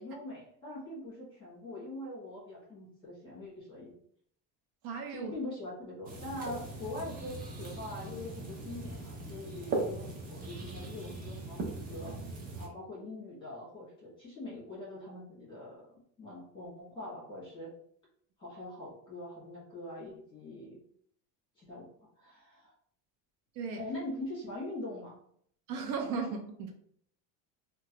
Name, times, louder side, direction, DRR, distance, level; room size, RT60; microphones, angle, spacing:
voice 1, 0.0-3.9 5.1-12.2 12.6-15.8 16.2-17.7 18.4-20.8 21.6-21.9 22.2-22.7 23.7-25.2, left 1 dB, 10° left, -6 dB, 1.4 m, -43 dB
voice 2, 4.8-5.3 23.5-23.8 25.7-26.7, right 5 dB, 70° right, 3 dB, 0.6 m, -36 dB
Fishing & Nature - The Netherlands, 6.1-12.7, right 2 dB, 25° right, 0.4 m, -39 dB
2.9 x 2.3 x 2.9 m, 0.65 s
cardioid pair, 160°, 40 cm